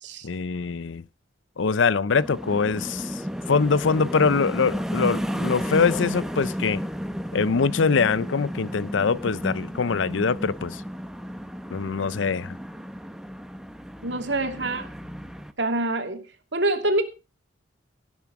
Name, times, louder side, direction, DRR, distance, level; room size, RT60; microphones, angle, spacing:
voice 1, 0.2-1.0 1.6-3.2 3.5-6.8 7.3-10.8 11.7-12.6, left 5 dB, 80° left, 0.6 m, -23 dB
sound 1, 2.1-15.5, equal, 5° right, 1.0 m, -33 dB
voice 2, 14.0-14.9 15.6-16.3 16.5-17.0, right 2 dB, 65° right, 2.6 m, -25 dB
17.5 x 7.1 x 6.0 m
head